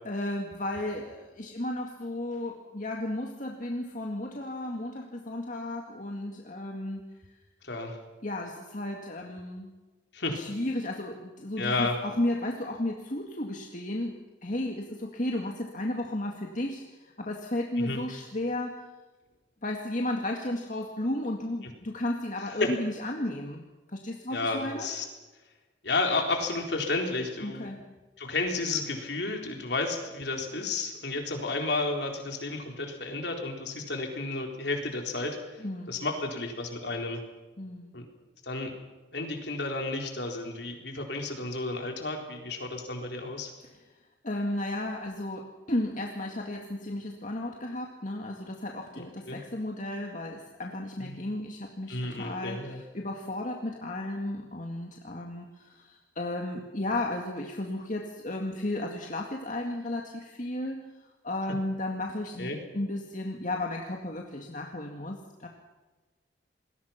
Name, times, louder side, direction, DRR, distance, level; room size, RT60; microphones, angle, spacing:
voice 1, 0.0-7.0 8.2-9.7 10.3-14.2 14.4-18.8 19.6-24.9 27.4-27.8 35.6-36.0 37.6-38.0 44.2-65.5, left 1 dB, 45° left, 1 dB, 2.1 m, -34 dB
voice 2, 7.6-8.0 10.1-10.4 11.6-12.0 17.8-18.0 22.6-22.7 24.3-25.0 25.8-27.8 28.2-37.2 37.9-38.1 38.4-38.7 39.1-43.5 49.3-49.4 51.0-51.2 51.9-52.8 62.4-62.6, left 3 dB, 65° left, 3 dB, 4.1 m, -32 dB
28.0 x 21.0 x 5.9 m, 1.2 s
head